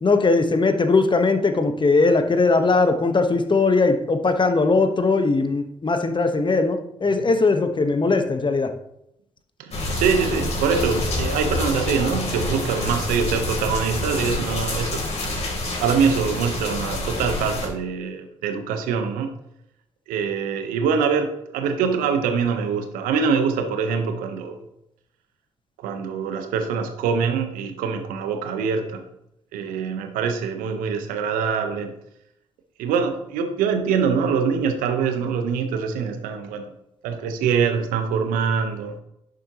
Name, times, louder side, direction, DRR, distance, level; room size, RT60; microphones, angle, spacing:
voice 1, 0.0-8.7, left 3 dB, 35° left, 7 dB, 1.3 m, -20 dB
voice 2, 9.6-15.0 15.8-19.3 20.1-24.6 25.8-29.0 29.5-31.9 32.8-36.7 37.0-39.0, right 6 dB, 75° right, 7 dB, 1.2 m, -24 dB
sound 1, 9.7-17.7, left 2 dB, 50° left, 3.3 m, -27 dB
11.0 x 6.8 x 3.1 m, 0.79 s
hypercardioid pair, 40°, 14 cm